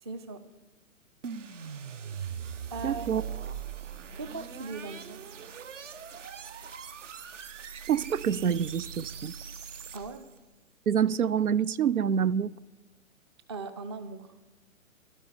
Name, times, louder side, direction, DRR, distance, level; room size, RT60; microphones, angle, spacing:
voice 1, 0.0-0.4 2.7-3.3 4.1-5.3 9.9-10.3 13.5-14.3, right 3 dB, 20° right, 0.5 m, -39 dB
sound 1, 1.2-10.3, right 7 dB, 60° right, 0.9 m, -41 dB
voice 2, 2.8-3.2 7.9-9.3 10.9-12.5, right 8 dB, 85° right, 0.5 m, -26 dB
13.5 x 12.5 x 4.4 m
figure-of-eight pair, 125°, 42 cm